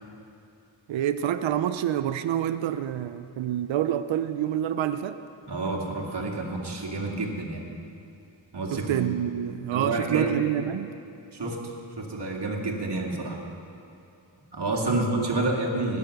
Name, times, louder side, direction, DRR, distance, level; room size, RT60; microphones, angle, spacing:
voice 1, 0.9-5.2 8.7-11.0 14.8-15.4, right 10 dB, 70° right, 11 dB, 0.6 m, -27 dB
voice 2, 5.4-7.6 8.5-9.1 9.7-10.3 11.3-13.4 14.5-16.0, right 2 dB, 55° right, 0 dB, 2.2 m, -29 dB
19.0 x 7.1 x 6.4 m, 2.7 s
cardioid pair, 70°, 47 cm